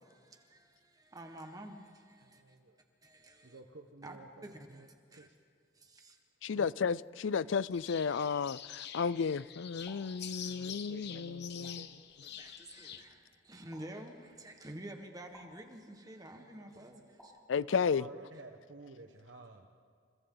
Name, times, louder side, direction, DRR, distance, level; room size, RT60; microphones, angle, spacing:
voice 1, 0.0-2.6 3.0-3.6 4.0-4.2 4.4-5.3 5.7-6.2 6.5-6.7 12.2-17.4, right 1 dB, 20° right, 1.6 m, -50 dB
voice 2, 2.2-2.8 3.4-5.3 10.5-12.0 16.3-17.1 17.5-19.7, right 3 dB, 75° right, 1.2 m, -53 dB
voice 3, 6.4-11.8 17.5-18.0, left 6 dB, 80° left, 0.5 m, -33 dB
sound 1, 7.7-13.0, left 9 dB, 60° left, 1.0 m, -47 dB
sound 2, 9.8-10.0 11.6-11.8 13.7-13.8 15.3-15.5 17.2-17.3, right 1 dB, 5° left, 7.3 m, -56 dB
29.5 x 29.0 x 4.0 m
head